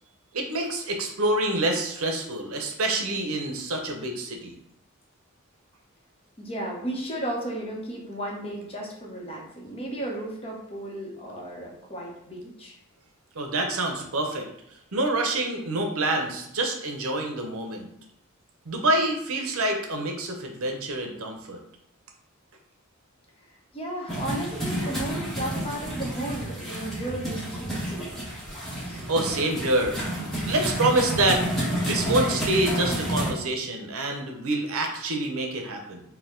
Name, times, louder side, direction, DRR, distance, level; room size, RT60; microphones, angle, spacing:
voice 1, 0.3-4.5 13.4-14.5 14.9-17.9 18.7-21.6 29.1-30.0 30.4-31.4 31.7-36.0, right 2 dB, 80° right, 3 dB, 0.7 m, -26 dB
voice 2, 6.4-12.8 23.7-28.3 28.8-29.1, right 1 dB, 25° left, -2 dB, 0.8 m, -34 dB
sound 1, 24.1-33.3, right 1 dB, ahead, 1.0 m, -30 dB
4.5 x 2.2 x 3.7 m, 0.75 s
head